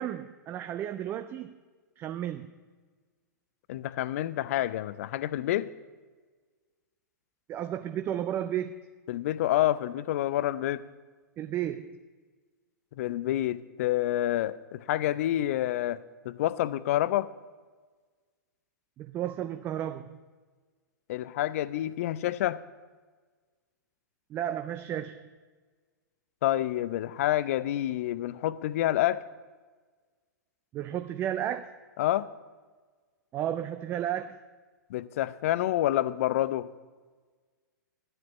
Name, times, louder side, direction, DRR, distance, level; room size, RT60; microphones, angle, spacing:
voice 1, 0.0-1.5 2.0-2.5 7.5-8.8 11.4-12.0 19.0-20.2 24.3-25.3 30.7-31.7 33.3-34.4, right 11 dB, 20° right, 10 dB, 0.4 m, -33 dB
voice 2, 3.7-5.7 9.1-10.8 13.0-16.0 16.2-17.3 21.1-22.6 26.4-29.2 32.0-32.3 34.9-36.7, left 13 dB, 45° left, 17 dB, 0.5 m, -28 dB
12.5 x 7.7 x 6.9 m, 1.4 s
figure-of-eight pair, 105°, 10 cm